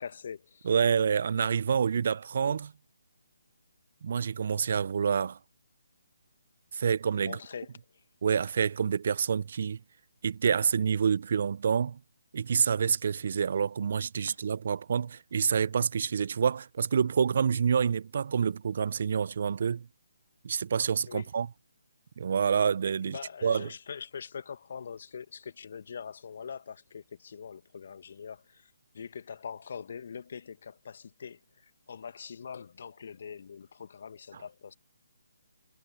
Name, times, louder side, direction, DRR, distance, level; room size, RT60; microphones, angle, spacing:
voice 1, 0.0-0.7 7.2-8.0 14.3-14.4 21.0-21.3 23.0-34.7, left 6 dB, 50° left, 1.7 m, -43 dB
voice 2, 0.6-2.7 4.0-5.4 6.7-7.4 8.2-9.8 10.2-12.0 12.3-19.9 20.4-21.5 22.2-23.1 23.4-23.7, right 7 dB, 50° right, 0.9 m, -27 dB
figure-of-eight pair, 145°, 0 cm